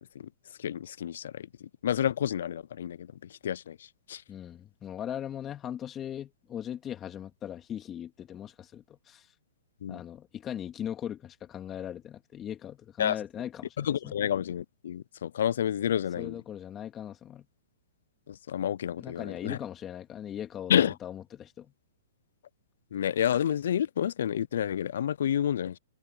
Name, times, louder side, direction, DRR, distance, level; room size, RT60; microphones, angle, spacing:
voice 1, 0.6-1.5 1.8-3.1 3.4-3.8 4.1-4.2 9.8-10.0 13.0-13.2 13.8-16.4 18.3-19.6 20.7-20.9 22.9-25.8, left 9 dB, 70° left, 0.3 m, -29 dB
voice 2, 4.3-9.3 9.9-14.1 16.2-17.5 19.0-21.7, left 10 dB, 20° left, 2.4 m, -39 dB
hypercardioid pair, 145°, 0 cm